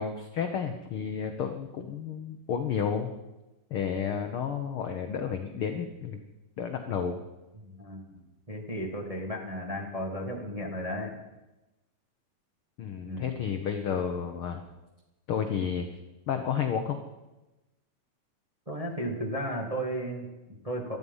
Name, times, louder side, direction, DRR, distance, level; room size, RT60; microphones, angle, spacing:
voice 1, 0.0-3.1 3.7-6.2 6.6-7.2 12.8-14.6 15.3-15.9 16.3-17.0, left 7 dB, 80° left, 6 dB, 1.2 m, -31 dB
voice 2, 7.6-8.2 8.5-11.1 13.0-13.4 18.7-21.0, equal, 15° right, 0 dB, 1.4 m, -34 dB
19.0 x 13.5 x 5.5 m, 1.0 s
omnidirectional pair, 3.8 m